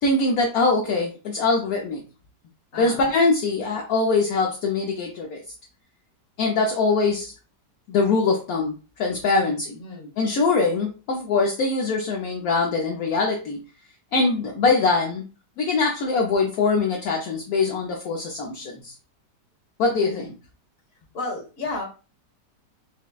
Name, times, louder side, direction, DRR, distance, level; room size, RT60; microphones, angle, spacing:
voice 1, 0.0-2.0 2.8-5.4 6.4-7.3 7.9-9.6 10.2-13.6 14.1-15.2 15.6-18.9 19.8-20.3, left 3 dB, 65° left, 0 dB, 1.0 m, -23 dB
voice 2, 2.7-3.1 9.2-10.1 19.9-20.3 21.1-21.9, left 2 dB, 40° left, 0 dB, 1.3 m, -33 dB
5.7 x 2.1 x 2.3 m, 0.33 s
omnidirectional pair, 1.9 m